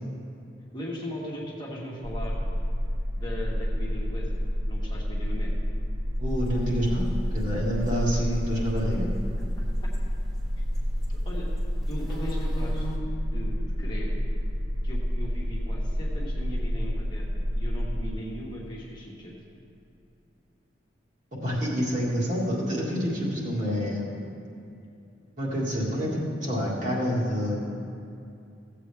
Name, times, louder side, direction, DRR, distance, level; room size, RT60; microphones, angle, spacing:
voice 1, 0.7-2.4 3.1-4.4 4.7-5.5 11.2-11.5 11.9-14.2 14.8-19.3, equal, 25° left, -4 dB, 1.3 m, -38 dB
sound 1, 2.0-18.1, equal, 80° right, 1.0 m, -29 dB
voice 2, 6.2-9.1 21.4-24.2 25.4-27.6, equal, 40° right, -5 dB, 2.0 m, -28 dB
sound 2, 6.3-13.0, equal, ahead, 1.5 m, -44 dB
15.5 x 7.7 x 3.5 m, 2.6 s
head